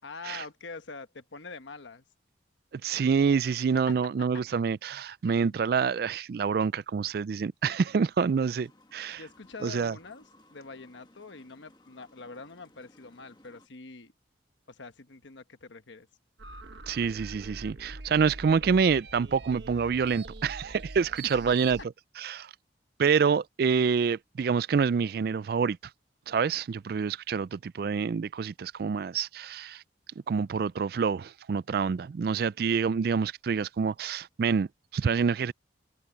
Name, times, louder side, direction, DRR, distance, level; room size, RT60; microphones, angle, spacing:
voice 1, 0.0-2.0 5.3-5.5 9.1-14.1 14.7-16.1, left 4 dB, 80° left, 1.2 m, -45 dB
voice 2, 2.7-9.2 9.6-10.0 16.9-21.8 22.2-22.5 23.0-25.8 26.3-29.8 30.3-35.5, right 6 dB, 55° right, 0.3 m, -27 dB
sound 1, 8.3-13.7, left 1 dB, 25° left, 1.5 m, -60 dB
sound 2, 16.4-21.8, right 2 dB, 70° right, 1.3 m, -43 dB
head